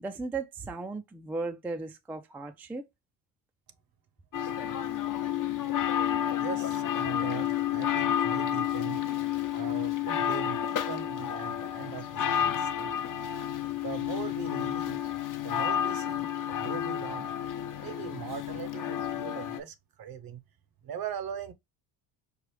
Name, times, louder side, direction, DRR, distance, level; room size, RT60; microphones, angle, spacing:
voice 1, 0.0-2.9, right 3 dB, 5° right, 0.4 m, -36 dB
sound 1, 4.3-19.6, left 10 dB, 40° left, 0.8 m, -30 dB
voice 2, 6.4-9.0 9.5-12.9 13.8-15.0 15.4-17.3 17.8-20.4 20.8-21.5, right 8 dB, 45° right, 0.8 m, -41 dB
4.8 x 2.4 x 3.1 m
supercardioid pair, 95°, 48 cm